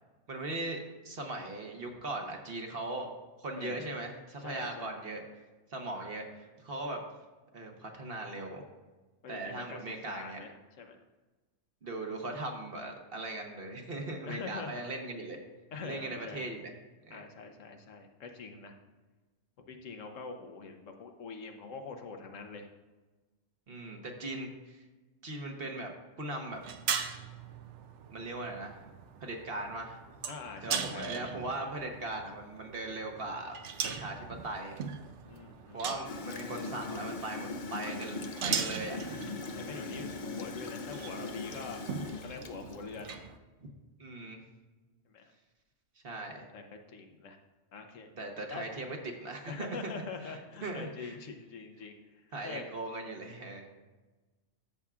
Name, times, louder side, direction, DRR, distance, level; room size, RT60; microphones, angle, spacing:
voice 1, 0.3-3.1 3.4-5.4 5.7-7.0 7.5-8.6 9.3-10.4 11.8-15.4 15.8-16.7 17.0-17.2 23.7-24.8 25.2-25.9 26.2-26.6 28.1-28.8 29.2-30.0 30.6-33.6 33.9-34.8 35.7-39.2 44.0-44.4 46.0-46.4 48.2-49.9 50.2-51.2 52.3-53.7, right 2 dB, 50° right, 2 dB, 1.2 m, -39 dB
voice 2, 3.6-4.0 4.4-4.9 9.2-9.8 10.1-10.5 10.8-11.0 14.3-14.8 15.7-16.5 17.1-18.7 19.7-22.7 30.3-31.3 35.3-36.0 39.5-43.2 45.1-45.3 46.5-47.4 47.7-48.1 48.5-48.6 49.5-52.6, left 4 dB, 85° left, 5 dB, 1.2 m, -44 dB
sound 1, 26.5-43.4, right 7 dB, 70° right, 0.9 m, -40 dB
Gurgling / Toilet flush, 36.0-43.1, left 3 dB, 50° left, 0.7 m, -40 dB
12.5 x 7.0 x 2.4 m, 1.2 s
omnidirectional pair, 1.3 m